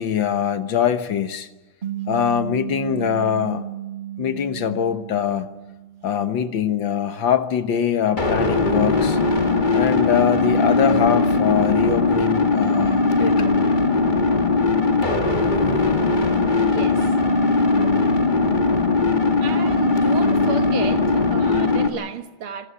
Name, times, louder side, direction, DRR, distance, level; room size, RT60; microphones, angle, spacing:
voice 1, 0.0-1.5 2.1-3.7 4.2-5.5 6.0-9.2 9.7-13.4, left 8 dB, 65° left, 1.9 m, -22 dB
sound 1, 1.8-6.5, right 12 dB, 25° right, 1.4 m, -33 dB
sound 2, 8.2-21.9, left 3 dB, 20° left, 2.0 m, -19 dB
voice 2, 16.6-17.1 19.4-22.7, right 6 dB, 75° right, 2.3 m, -32 dB
26.5 x 15.5 x 9.5 m
omnidirectional pair, 2.3 m